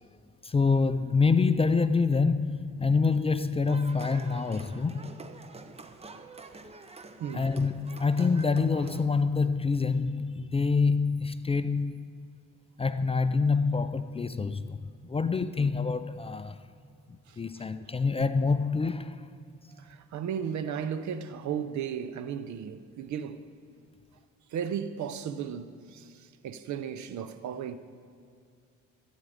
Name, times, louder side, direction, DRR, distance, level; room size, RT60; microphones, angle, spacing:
voice 1, 0.4-5.1 7.3-12.0 12.8-14.8 15.1-16.6 17.1-19.2, left 4 dB, 20° left, 0.4 m, -26 dB
sound 1, 3.7-9.1, right 3 dB, 20° right, 0.7 m, -47 dB
voice 2, 7.2-7.5 17.3-17.7 19.8-23.5 24.5-27.8, right 8 dB, 70° right, 0.7 m, -35 dB
13.5 x 9.1 x 4.9 m
cardioid pair, 90°, 30 cm